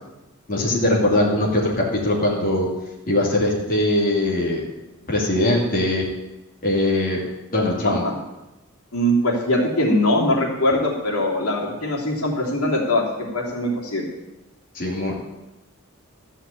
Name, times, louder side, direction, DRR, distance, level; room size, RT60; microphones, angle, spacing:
voice 1, 0.5-2.7 3.1-4.6 5.1-6.1 6.6-7.2 7.5-8.0 14.7-15.2, left 1 dB, 40° left, -3 dB, 2.7 m, -21 dB
voice 2, 7.8-8.2 8.9-14.0, left 1 dB, 85° left, -3 dB, 3.2 m, -22 dB
13.5 x 5.8 x 8.7 m, 0.99 s
head